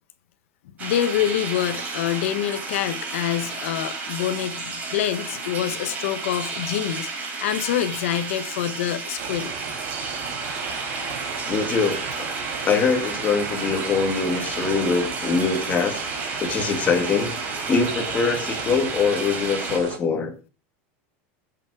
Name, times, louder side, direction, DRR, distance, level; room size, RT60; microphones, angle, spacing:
voice 1, 0.8-9.5, left 11 dB, 80° left, 1.3 m, -26 dB
sound 1, 0.8-19.8, right 4 dB, 25° right, 4.7 m, -32 dB
sound 2, 9.2-20.0, right 7 dB, 50° right, 2.4 m, -36 dB
voice 2, 11.5-12.3 12.6-16.0 16.4-17.3 17.7-20.3, left 5 dB, 20° left, 2.2 m, -23 dB
16.5 x 7.6 x 4.9 m
supercardioid pair, 165°, 7 cm